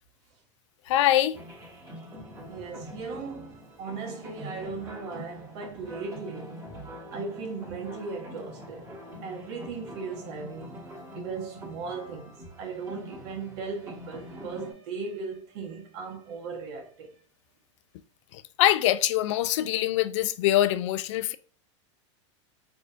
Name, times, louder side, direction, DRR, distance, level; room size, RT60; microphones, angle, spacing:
voice 1, 0.9-1.4 18.3-21.4, left 13 dB, 70° left, 0.4 m, -24 dB
sound 1, 1.3-14.7, left 1 dB, 20° right, 1.3 m, -44 dB
voice 2, 2.5-6.6 7.1-8.9 9.2-10.8 11.1-17.2, right 4 dB, 60° right, 1.3 m, -37 dB
4.2 x 3.4 x 2.5 m
supercardioid pair, 135°, 16 cm